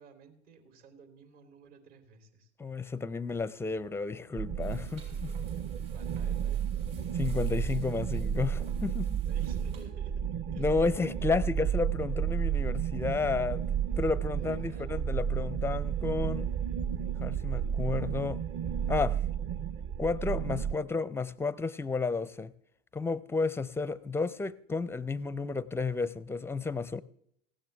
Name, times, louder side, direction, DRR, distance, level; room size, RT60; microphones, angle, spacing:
voice 1, 0.0-2.5 5.9-6.6 9.3-10.3 10.5-10.9 14.3-15.0, right 5 dB, 65° right, 3.5 m, -54 dB
voice 2, 2.6-5.3 7.1-9.2 10.6-13.6 14.0-16.5 17.2-18.4 18.9-19.2 20.0-22.5 22.9-27.0, left 4 dB, 5° left, 0.4 m, -32 dB
sound 1, 4.4-20.7, right 8 dB, 35° right, 0.8 m, -32 dB
sound 2, 4.6-9.8, right 5 dB, 85° right, 6.7 m, -59 dB
19.0 x 16.0 x 3.4 m
hypercardioid pair, 90°, 39 cm